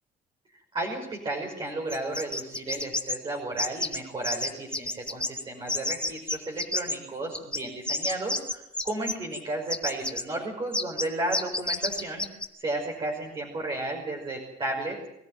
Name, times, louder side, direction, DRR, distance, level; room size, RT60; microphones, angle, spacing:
voice 1, 0.5-12.3 12.6-15.1, right 2 dB, 30° right, -1 dB, 5.6 m, -33 dB
sound 1, 1.9-3.2 3.6-4.0 4.2-5.4 5.7-7.0 7.3-9.4 9.7-10.2 10.7-11.1 11.3-12.5, left 2 dB, 5° left, 2.3 m, -29 dB
24.5 x 13.5 x 9.2 m, 0.90 s
cardioid pair, 110°, 17 cm